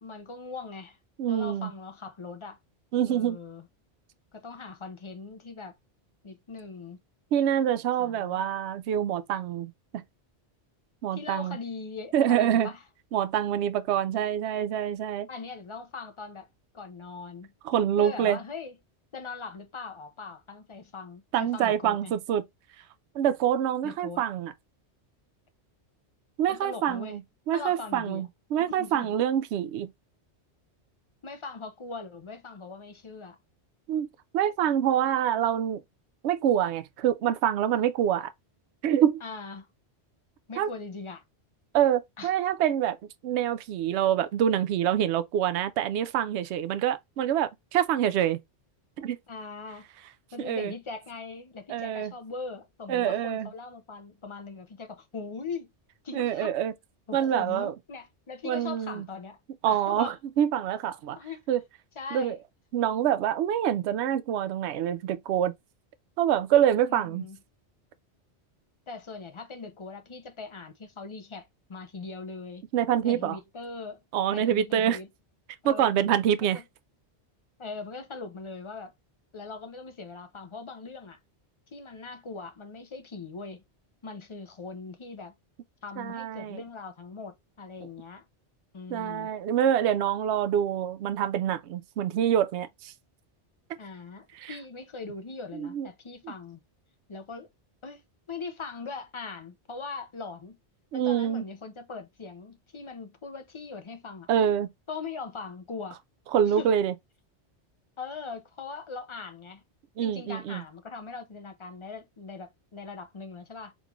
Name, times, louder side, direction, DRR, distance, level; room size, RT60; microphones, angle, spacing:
voice 1, 0.0-1.0 1.3-2.6 3.0-3.7 4.3-5.7 6.2-7.0 8.0-8.5 11.1-12.8 15.3-16.5 16.7-17.5 18.0-18.7 19.1-22.1 23.8-24.2 26.5-27.2 27.5-28.3 28.6-29.2 31.2-33.4 39.2-39.7 40.5-41.2 42.2-42.5 49.3-49.9 50.3-55.7 56.0-56.5 57.1-59.4 59.7-60.2 61.2-61.4 62.0-62.4 66.8-67.4 68.9-72.6 73.0-74.0 74.3-75.1 75.7-76.6 77.6-78.9 79.3-81.2 81.7-83.6 84.0-85.3 85.8-88.2 88.7-89.3 93.8-96.6 97.1-97.5 97.8-98.0 98.3-100.6 100.9-104.3 104.9-106.0 106.5-106.7 108.0-109.6 110.0-113.7, left 4 dB, 35° left, 0.6 m, -40 dB
voice 2, 1.2-1.7 2.9-3.4 7.3-10.0 11.0-11.6 12.1-12.7 13.1-15.3 17.6-18.4 21.3-22.4 23.1-24.5 26.4-27.2 27.5-29.9 33.9-34.1 34.3-35.8 36.2-38.3 38.8-39.2 40.6-40.7 41.7-43.0 43.2-48.4 49.0-49.2 50.4-50.7 51.7-52.1 52.9-53.5 56.1-56.7 57.1-57.7 58.4-59.0 59.6-61.2 61.5-61.6 62.1-62.4 62.7-65.5 66.2-67.3 72.7-73.4 74.1-75.0 75.6-76.6 86.0-86.6 88.9-92.9 94.4-94.5 95.5-95.9 96.2-96.3 100.9-101.4 104.3-104.7 106.3-106.9 110.0-110.6, right 10 dB, 75° right, 0.8 m, -26 dB
3.8 x 3.6 x 3.0 m
omnidirectional pair, 1.2 m